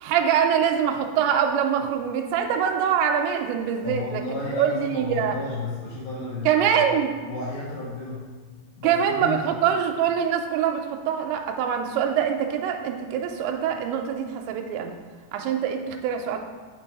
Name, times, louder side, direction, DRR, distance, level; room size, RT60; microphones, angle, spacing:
voice 1, 0.0-4.2 4.5-5.4 6.5-7.1 8.8-14.9 15.3-16.4, right 8 dB, 90° right, 4 dB, 2.8 m, -24 dB
voice 2, 3.8-6.6 7.3-8.2 8.8-9.4, left 3 dB, 70° left, -6 dB, 2.4 m, -32 dB
5.7 x 4.5 x 4.6 m, 1.5 s
omnidirectional pair, 5.0 m